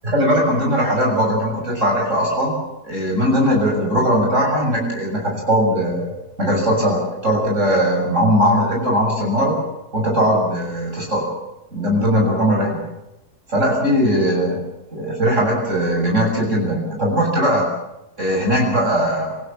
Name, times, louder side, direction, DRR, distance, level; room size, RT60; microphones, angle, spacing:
voice 1, 0.0-2.5 2.8-6.1 6.4-9.5 9.9-11.3 11.7-12.7 13.5-14.6 14.9-17.7 18.2-19.3, equal, 50° right, -1 dB, 7.5 m, -19 dB
28.0 x 16.0 x 7.5 m, 0.92 s
omnidirectional pair, 1.6 m